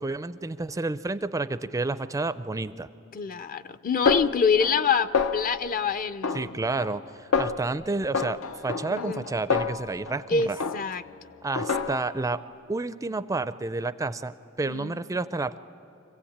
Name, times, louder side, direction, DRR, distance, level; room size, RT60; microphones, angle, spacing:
voice 1, 0.0-2.9 6.3-10.6 11.4-12.4 12.7-15.6, right 3 dB, 15° right, 14 dB, 0.4 m, -30 dB
voice 2, 3.1-6.5 8.9-9.2 10.3-11.0 14.7-15.0, left 5 dB, 40° left, 14 dB, 0.5 m, -26 dB
Snare drum, 4.1-4.9 5.1-5.7 6.2-7.0 7.3-7.7 8.1-10.2 10.6-11.1 11.6-12.2, left 5 dB, 85° left, 0.7 m, -28 dB
25.5 x 16.0 x 8.6 m, 2.9 s
head